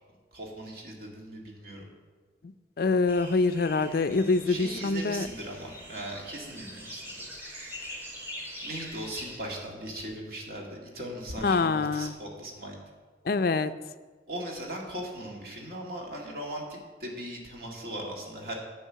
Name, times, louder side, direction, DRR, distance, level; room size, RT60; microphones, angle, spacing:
voice 1, 0.3-1.9 4.5-7.2 7.8-8.2 8.6-12.8 14.3-18.5, right 1 dB, 55° right, -1 dB, 2.2 m, -39 dB
voice 2, 2.4-5.3 11.4-12.1 13.3-13.7, left 3 dB, 55° left, 13 dB, 0.4 m, -25 dB
sound 1, 3.1-9.4, equal, 10° right, 2.1 m, -43 dB
10.0 x 8.0 x 5.7 m, 1.4 s
head